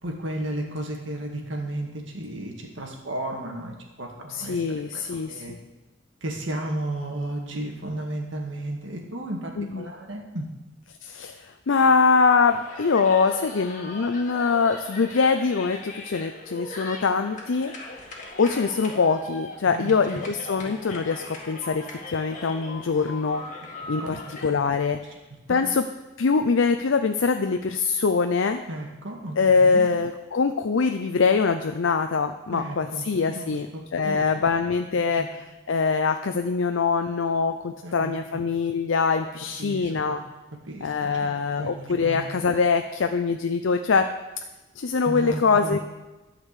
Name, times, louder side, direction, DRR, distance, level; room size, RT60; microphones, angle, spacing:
voice 1, 0.0-5.0 5.3-5.5 6.2-10.5 19.7-20.2 24.0-24.3 25.5-25.6 28.7-29.9 32.5-34.2 35.2-35.3 37.8-38.4 39.6-40.2 40.7-42.3 45.1-45.8, right 1 dB, 70° right, 1 dB, 2.0 m, -34 dB
voice 2, 4.3-5.6 9.6-9.9 11.0-17.7 18.4-23.4 23.9-25.0 25.5-25.9 26.2-28.6 29.4-33.7 33.9-35.4 35.7-40.2 40.8-44.1 44.8-45.8, left 5 dB, 70° left, 7 dB, 0.5 m, -23 dB
sound 1, 12.5-24.5, left 2 dB, 40° left, 2.1 m, -40 dB
12.0 x 5.1 x 8.2 m, 1.1 s
head